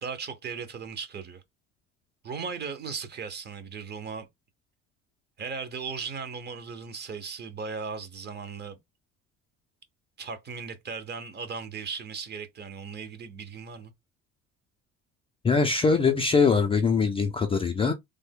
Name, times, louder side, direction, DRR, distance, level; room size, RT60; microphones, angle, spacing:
voice 1, 0.0-1.4 2.2-4.3 5.4-8.8 10.2-13.9, right 5 dB, 30° right, 0.8 m, -37 dB
voice 2, 15.4-17.9, left 5 dB, 20° left, 0.3 m, -22 dB
3.3 x 2.1 x 3.6 m
cardioid pair, 135°, 32 cm